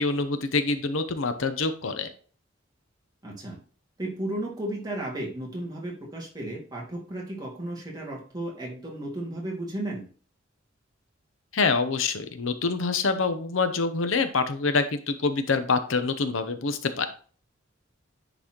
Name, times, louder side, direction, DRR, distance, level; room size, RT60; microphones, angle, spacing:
voice 1, 0.0-2.1 11.5-17.1, left 4 dB, 90° left, 9 dB, 0.8 m, -26 dB
voice 2, 3.2-3.6 4.0-10.0, right 1 dB, 20° right, -3 dB, 2.3 m, -34 dB
9.9 x 4.1 x 3.0 m, 0.41 s
head